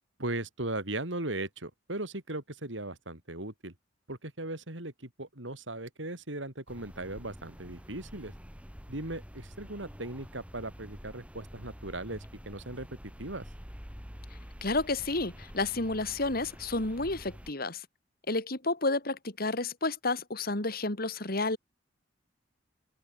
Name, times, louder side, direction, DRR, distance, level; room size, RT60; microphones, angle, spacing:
voice 1, 0.2-3.7 4.1-8.3 8.9-12.9 13.2-13.4, right 2 dB, 75° right, 5.0 m, -38 dB
sound 1, 6.7-17.5, equal, 5° right, 5.6 m, -48 dB
voice 2, 14.6-17.8 18.3-21.6, left 2 dB, 55° left, 3.0 m, -31 dB
open air
head